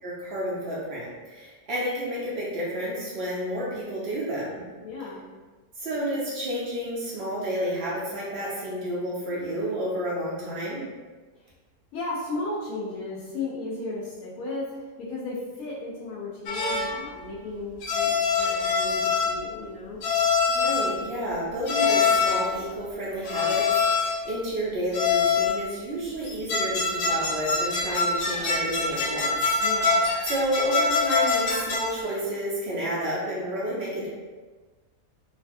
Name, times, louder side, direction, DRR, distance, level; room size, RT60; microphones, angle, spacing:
voice 1, 0.0-4.6 5.8-10.8 20.5-29.6 30.2-34.1, equal, 60° right, -6 dB, 0.7 m, -30 dB
voice 2, 4.8-5.2 11.9-20.0 29.6-30.0, left 2 dB, 70° left, -6 dB, 1.0 m, -35 dB
sound 1, 16.5-17.0 17.8-19.5 20.0-20.9 21.7-22.5 23.2-24.3 24.9-25.6 26.2-32.0, left 4 dB, 90° left, 1.2 m, -24 dB
3.2 x 2.2 x 2.6 m, 1.3 s
omnidirectional pair, 1.7 m